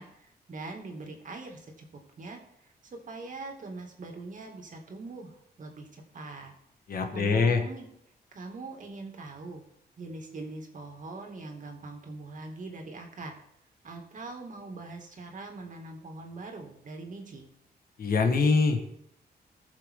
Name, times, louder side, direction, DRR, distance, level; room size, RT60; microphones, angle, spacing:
voice 1, 0.0-1.9 2.2-6.5 7.1-7.9 8.3-9.6 10.0-13.4 13.8-17.5, right 3 dB, 50° right, 2 dB, 2.4 m, -42 dB
voice 2, 6.9-7.6 18.0-18.8, left 4 dB, 60° left, 4 dB, 1.6 m, -24 dB
19.5 x 6.8 x 3.8 m, 0.74 s
wide cardioid pair, 125°, 17 cm